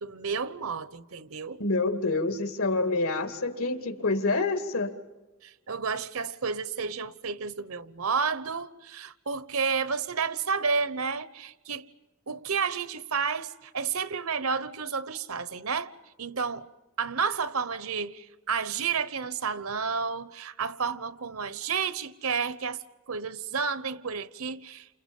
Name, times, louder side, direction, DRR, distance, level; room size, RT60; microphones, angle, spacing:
voice 1, 0.0-1.6 5.4-11.9 12.3-15.9 16.2-16.7 17.0-24.9, right 5 dB, 80° right, 1.0 m, -31 dB
voice 2, 1.6-4.9, left 3 dB, 80° left, 2.5 m, -27 dB
29.5 x 28.0 x 5.5 m
head